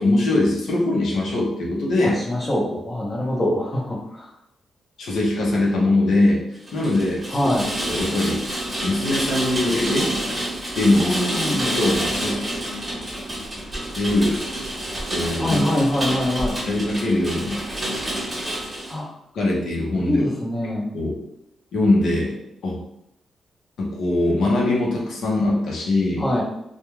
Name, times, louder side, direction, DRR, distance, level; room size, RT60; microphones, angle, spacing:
voice 1, 0.0-2.2 5.0-6.4 6.7-7.5 7.8-8.4 8.8-10.1 10.7-11.4 11.7-12.4 13.9-14.4 15.1-15.6 16.7-17.6 19.3-20.2 20.9-21.2 21.7-22.4 22.6-22.8 23.8-26.2, left 2 dB, 75° left, -3 dB, 0.7 m, -21 dB
voice 2, 2.0-4.3 7.3-7.7 11.0-11.8 15.4-16.6 18.9-19.1 20.0-20.9 26.2-26.4, left 1 dB, 20° left, -3 dB, 0.8 m, -24 dB
Rain, 6.6-19.0, right 1 dB, 15° right, 0.7 m, -28 dB
2.4 x 2.2 x 3.0 m, 0.81 s
cardioid pair, 125°, 0 cm